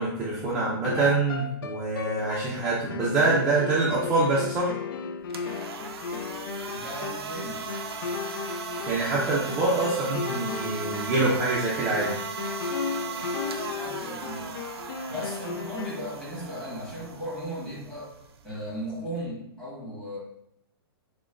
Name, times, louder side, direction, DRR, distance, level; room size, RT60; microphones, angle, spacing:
voice 1, 0.0-4.7 8.9-12.1, right 3 dB, 15° right, -6 dB, 0.5 m, -25 dB
sound 1, 0.8-16.1, left 6 dB, 65° left, 0.4 m, -35 dB
sound 2, 5.2-19.3, right 6 dB, 90° right, 0.5 m, -38 dB
voice 2, 6.7-7.7 13.8-14.6 15.1-20.2, equal, 5° left, -8 dB, 1.3 m, -36 dB
6.0 x 2.2 x 2.4 m, 0.75 s
hypercardioid pair, 160°, 13 cm